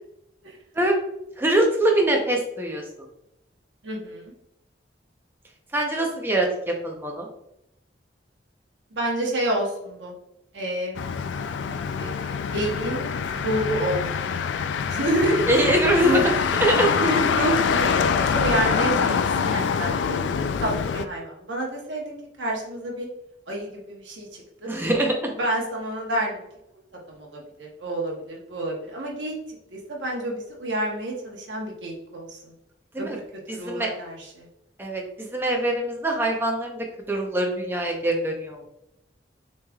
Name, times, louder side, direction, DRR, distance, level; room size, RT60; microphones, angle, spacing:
voice 1, 1.4-2.8 5.7-7.3 15.5-16.9 24.7-25.3 32.9-33.2 33.5-33.9 34.8-38.7, right 1 dB, 10° right, 1 dB, 0.7 m, -23 dB
voice 2, 3.8-4.3 8.9-10.1 10.5-11.0 12.0-13.1 13.3-14.0 14.3-14.4 14.9-15.5 16.0-16.2 17.0-23.1 23.5-24.7 25.4-26.4 27.1-29.3 29.7-32.5 33.0-33.2 33.5-34.5, right 1 dB, 90° right, -1 dB, 1.0 m, -29 dB
Motor vehicle (road), 10.9-21.1, left 6 dB, 80° left, 0.3 m, -25 dB
6.8 x 3.2 x 2.3 m, 0.83 s
head